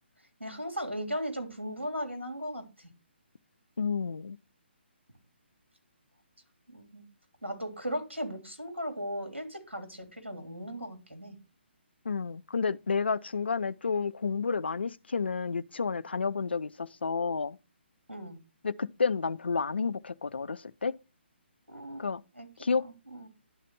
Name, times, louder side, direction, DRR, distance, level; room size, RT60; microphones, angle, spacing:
voice 1, 0.4-2.9 6.7-7.0 7.4-11.4 18.1-18.4 21.7-22.0 22.3-22.5 22.8-23.3, equal, 85° right, 3.2 m, -37 dB
voice 2, 3.8-4.4 12.1-17.6 18.6-20.9 22.0-22.2 22.6-22.8, left 5 dB, 65° left, 0.4 m, -30 dB
11.5 x 4.1 x 4.6 m
figure-of-eight pair, 140°, 6 cm